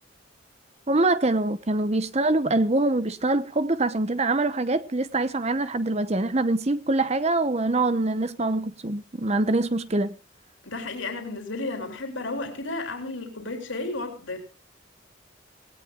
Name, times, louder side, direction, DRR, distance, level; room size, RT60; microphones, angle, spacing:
voice 1, 0.9-10.1, right 2 dB, 35° right, 0.9 m, -24 dB
voice 2, 10.6-14.4, left 2 dB, 75° left, 3.6 m, -33 dB
19.0 x 17.5 x 2.4 m
head